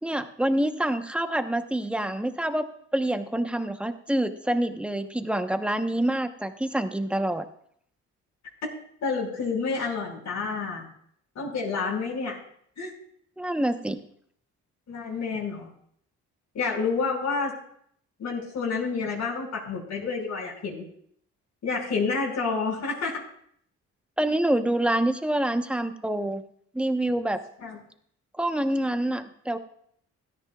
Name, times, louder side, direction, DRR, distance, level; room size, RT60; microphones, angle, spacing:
voice 1, 0.0-2.7 2.9-7.4 13.4-14.0 24.2-26.4 26.7-27.4 28.4-29.6, right 1 dB, 5° right, 7 dB, 1.0 m, -26 dB
voice 2, 9.0-10.9 11.4-12.4 12.8-12.9 14.9-15.7 16.5-17.5 18.2-20.8 21.6-23.2 27.6-27.8, left 4 dB, 65° left, -4 dB, 5.6 m, -29 dB
17.0 x 13.5 x 2.4 m, 0.66 s
cardioid pair, 90°, 30 cm